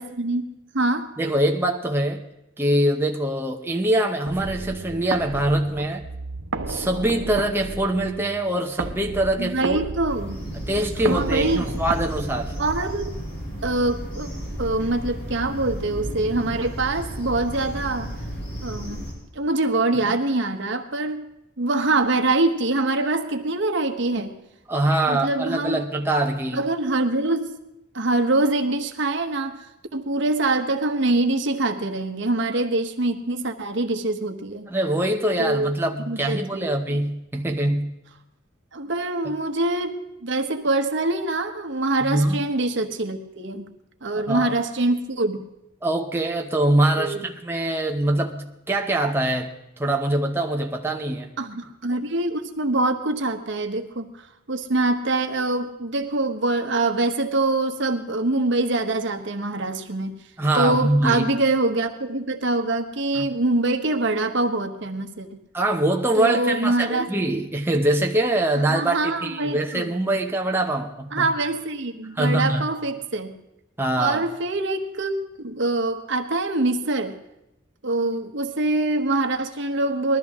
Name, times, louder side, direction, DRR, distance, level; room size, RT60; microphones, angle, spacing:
voice 1, 0.0-1.1 9.4-10.4 11.1-11.6 12.6-13.2 13.6-14.3 14.6-18.1 18.6-19.1 19.3-21.2 21.6-24.3 25.1-25.8 26.5-27.6 27.9-29.6 29.9-34.7 35.4-35.7 36.1-37.0 38.7-43.7 44.0-45.4 47.0-47.2 51.4-54.1 54.5-60.2 60.5-65.3 66.2-67.1 68.7-69.9 71.1-73.3 74.0-77.1 77.8-80.2, right 2 dB, 65° right, 6 dB, 1.1 m, -24 dB
voice 2, 1.2-2.2 2.6-6.0 6.7-9.9 10.7-12.5 20.1-20.2 24.7-26.6 34.7-37.9 42.0-42.4 44.1-44.5 45.8-51.3 60.4-61.3 63.1-63.4 65.5-71.3 72.2-72.6 73.8-74.2, right 1 dB, 10° right, 1 dB, 0.8 m, -23 dB
sound 1, 4.3-13.2, right 3 dB, 85° right, 0.8 m, -33 dB
sound 2, 10.1-19.1, equal, 50° left, 5.6 m, -33 dB
20.5 x 13.0 x 3.6 m, 0.89 s
head